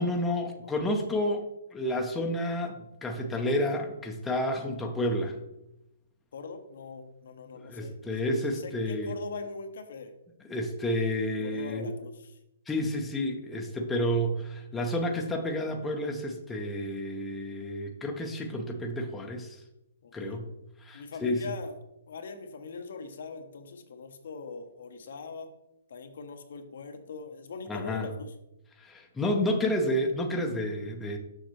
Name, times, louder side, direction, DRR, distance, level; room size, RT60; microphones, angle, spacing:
voice 1, 0.0-1.4 1.7-5.4 7.7-9.1 10.5-11.9 12.7-19.6 20.1-20.5 20.8-21.4 27.7-28.1 28.8-31.2, left 1 dB, 10° left, 2 dB, 0.7 m, -30 dB
voice 2, 6.3-8.0 8.5-10.1 11.4-12.4 14.7-15.1 20.0-20.4 20.9-21.7 22.1-25.5 25.9-28.3, left 4 dB, 70° left, 6 dB, 0.9 m, -41 dB
6.6 x 5.7 x 3.1 m, 0.87 s
hypercardioid pair, 145°, 0 cm